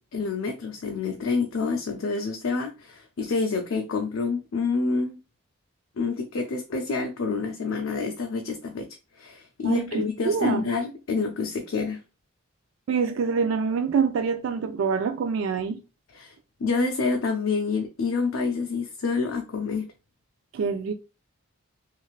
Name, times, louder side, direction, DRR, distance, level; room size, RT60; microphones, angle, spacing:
voice 1, 0.1-5.2 6.0-8.9 9.2-12.0 16.1-16.3 16.6-19.9, left 4 dB, 70° left, 0.4 m, -28 dB
voice 2, 9.6-10.6 12.9-15.8 20.5-20.9, right 5 dB, 65° right, 0.3 m, -25 dB
3.1 x 2.5 x 2.4 m
head